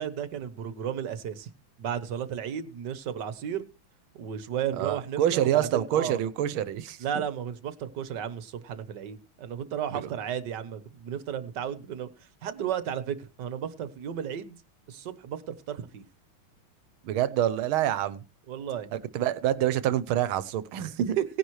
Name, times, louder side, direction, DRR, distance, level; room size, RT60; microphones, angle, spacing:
voice 1, 0.0-1.5 1.8-3.6 4.1-6.2 7.0-12.1 12.4-14.6 14.9-16.0 18.5-18.9 21.2-21.3, right 9 dB, 60° right, 1.6 m, -33 dB
voice 2, 4.8-7.0 9.9-10.1 17.0-18.2 18.9-21.2, right 11 dB, 85° right, 1.6 m, -27 dB
18.0 x 10.0 x 3.1 m
omnidirectional pair, 2.2 m